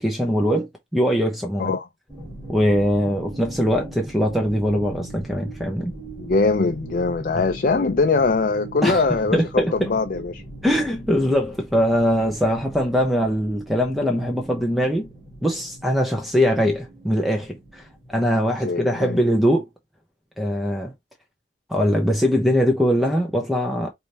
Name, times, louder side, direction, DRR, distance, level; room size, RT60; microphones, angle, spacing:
voice 1, 0.0-1.7 2.5-5.9 8.8-9.0 9.3-9.9 10.6-15.1 15.4-17.8 18.1-19.6 20.4-20.9 21.7-23.9, equal, ahead, 0.8 m, -21 dB
sound 1, 2.1-19.3, right 2 dB, 15° left, 2.7 m, -40 dB
voice 2, 6.2-10.4 18.6-19.2, left 3 dB, 45° left, 0.4 m, -22 dB
4.9 x 2.7 x 2.9 m
head